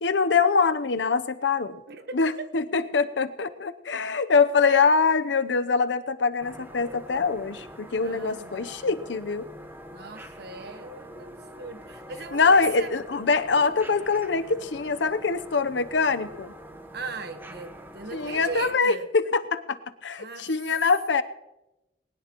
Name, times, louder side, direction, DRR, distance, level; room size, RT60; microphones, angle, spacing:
voice 1, 0.0-1.8 2.1-9.5 12.3-16.5 18.1-21.2, left 4 dB, 90° left, 0.7 m, -24 dB
voice 2, 1.9-2.5 8.0-8.9 9.9-12.9 16.9-19.1 20.2-20.5, right 4 dB, 65° right, 1.2 m, -39 dB
sound 1, 6.4-18.8, equal, 10° right, 1.1 m, -44 dB
20.5 x 18.5 x 3.0 m
head